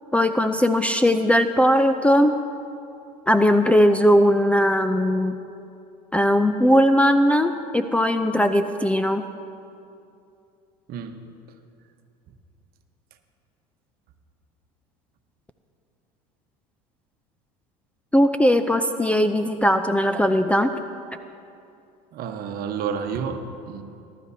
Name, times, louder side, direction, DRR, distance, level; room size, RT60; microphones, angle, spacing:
voice 1, 0.1-2.3 3.3-5.4 6.1-9.2 18.1-20.7, equal, 5° left, 8 dB, 0.5 m, -19 dB
voice 2, 10.9-11.2 22.1-23.8, right 6 dB, 50° right, 7 dB, 1.1 m, -30 dB
19.5 x 11.5 x 2.8 m, 2.6 s
hypercardioid pair, 85°, 19 cm